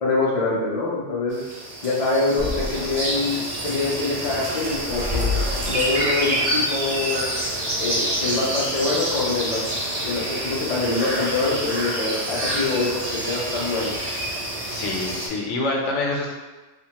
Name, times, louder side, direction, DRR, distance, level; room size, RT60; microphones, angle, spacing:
voice 1, 0.0-1.4 1.8-5.3 5.7-7.3 7.8-9.6 10.0-13.9, left 3 dB, 55° left, -6 dB, 0.4 m, -25 dB
sound 1, 1.3-15.3, right 1 dB, 45° right, 0.5 m, -27 dB
sound 2, 2.4-7.4, left 3 dB, 65° right, 1.5 m, -31 dB
voice 2, 14.7-16.3, left 2 dB, 75° left, -1 dB, 0.9 m, -26 dB
3.0 x 2.1 x 2.8 m, 1.2 s
omnidirectional pair, 1.2 m